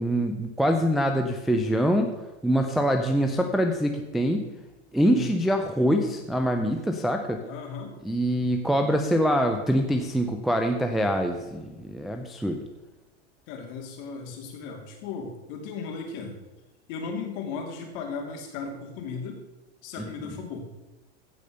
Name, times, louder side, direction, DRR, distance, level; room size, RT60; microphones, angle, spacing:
voice 1, 0.0-4.5 4.9-7.4 8.0-12.7 20.0-20.1, equal, ahead, 4 dB, 0.4 m, -24 dB
voice 2, 5.0-5.3 7.4-7.9 13.5-16.3 16.9-19.4 19.8-20.6, left 5 dB, 50° left, 3 dB, 3.0 m, -36 dB
15.5 x 5.2 x 6.5 m, 1.1 s
supercardioid pair, 140°, 36 cm